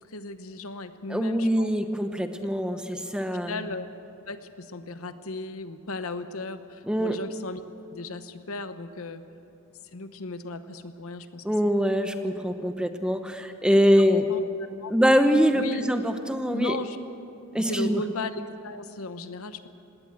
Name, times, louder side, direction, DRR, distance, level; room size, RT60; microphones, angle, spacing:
voice 1, 0.1-1.7 2.9-3.0 3.5-3.8 4.3-7.6 7.9-9.2 9.9-11.7 14.0-14.4 14.8-14.9 15.5-15.9 16.5-17.0 17.6-19.7, left 3 dB, 75° left, 10 dB, 1.0 m, -36 dB
voice 2, 1.1-3.5 6.9-7.2 11.4-14.3 14.9-16.8 17.5-18.0, equal, 5° right, 7 dB, 0.9 m, -23 dB
19.5 x 18.0 x 8.0 m, 2.6 s
head